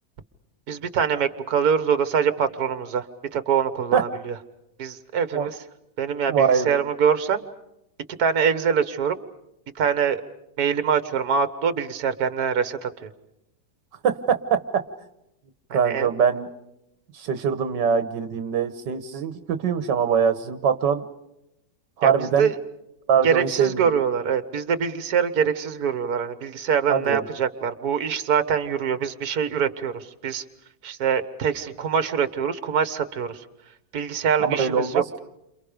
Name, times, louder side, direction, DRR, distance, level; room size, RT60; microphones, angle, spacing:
voice 1, 0.7-3.1 3.3-4.4 4.8-5.6 6.0-7.4 8.2-9.2 9.8-10.2 10.6-13.1 15.7-16.1 22.0-22.5 23.2-30.4 30.8-33.4 33.9-35.2, right 7 dB, 60° right, 11 dB, 1.8 m, -24 dB
voice 2, 6.3-6.7 14.0-14.8 15.7-16.5 17.1-21.0 22.0-22.5 23.1-23.9 26.9-27.2 34.4-35.2, right 7 dB, 80° right, 10 dB, 1.8 m, -23 dB
30.0 x 28.0 x 5.1 m, 0.84 s
omnidirectional pair, 1.9 m